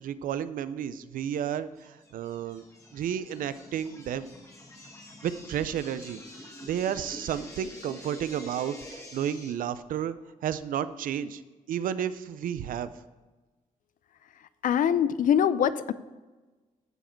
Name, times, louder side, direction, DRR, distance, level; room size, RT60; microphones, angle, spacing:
voice 1, 0.0-2.6 2.9-4.3 5.2-10.2 10.4-11.4 11.7-12.9, right 9 dB, 80° right, 13 dB, 0.5 m, -32 dB
sound 1, 1.8-9.5, left 1 dB, 25° left, 1.8 m, -47 dB
voice 2, 14.6-15.9, left 9 dB, 70° left, 15 dB, 0.5 m, -23 dB
14.5 x 4.9 x 4.5 m, 1.2 s
cardioid pair, 75°, 14 cm